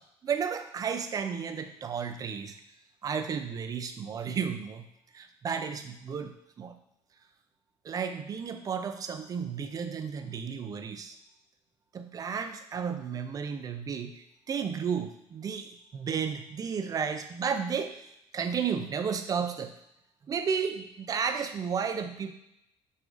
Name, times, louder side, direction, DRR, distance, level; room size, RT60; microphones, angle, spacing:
voice 1, 0.2-2.5 3.0-4.9 5.1-6.8 7.9-11.2 11.9-18.1 18.3-19.8 20.3-22.3, right 6 dB, 35° right, 7 dB, 0.4 m, -33 dB
5.9 x 2.4 x 2.5 m, 0.82 s
cardioid pair, 95°, 10 cm